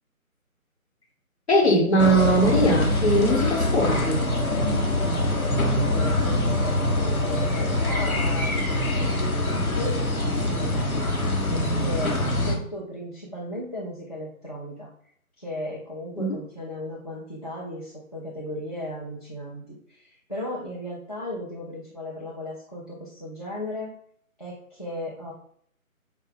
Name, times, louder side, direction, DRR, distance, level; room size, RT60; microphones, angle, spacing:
voice 1, 1.5-4.3 16.2-16.4, right 1 dB, 50° left, 0 dB, 1.2 m, -21 dB
sound 1, 2.0-12.6, left 1 dB, 75° left, 1.2 m, -24 dB
voice 2, 5.6-14.9 15.4-23.9 24.4-25.3, left 1 dB, 25° left, -6 dB, 0.7 m, -36 dB
5.6 x 2.4 x 3.8 m, 0.63 s
figure-of-eight pair, 160°, 43 cm